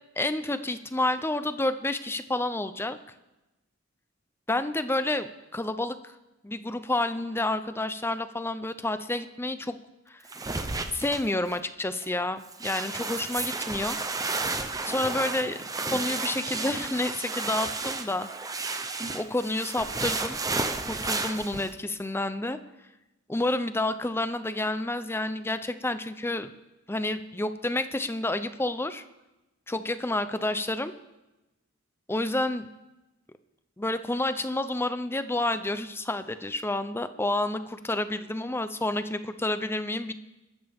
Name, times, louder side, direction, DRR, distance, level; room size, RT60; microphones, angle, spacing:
voice 1, 0.2-3.0 4.5-6.1 6.4-9.8 10.1-10.2 10.9-14.0 14.9-15.6 15.9-18.3 19.1-20.4 20.8-22.6 23.3-26.5 26.9-29.0 29.7-30.9 32.1-32.7 33.8-40.1, left 2 dB, 10° left, 11 dB, 0.6 m, -29 dB
sound 1, 10.3-11.6 12.0-12.1 12.5-21.7, right 3 dB, 15° right, 0.8 m, -32 dB
23.0 x 13.5 x 3.6 m, 1.0 s
head